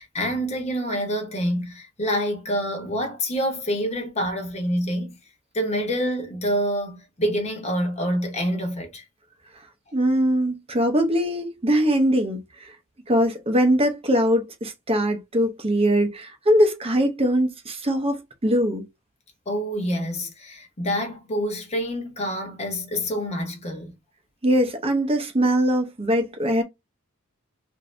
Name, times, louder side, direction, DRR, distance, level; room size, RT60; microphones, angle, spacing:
voice 1, 0.0-5.2 5.5-9.0 19.5-23.9, equal, 30° left, 0.9 m, -27 dB
voice 2, 9.9-12.7 13.1-18.2 18.4-18.8 24.4-26.6, equal, 25° right, 0.7 m, -21 dB
2.6 x 2.6 x 3.2 m
head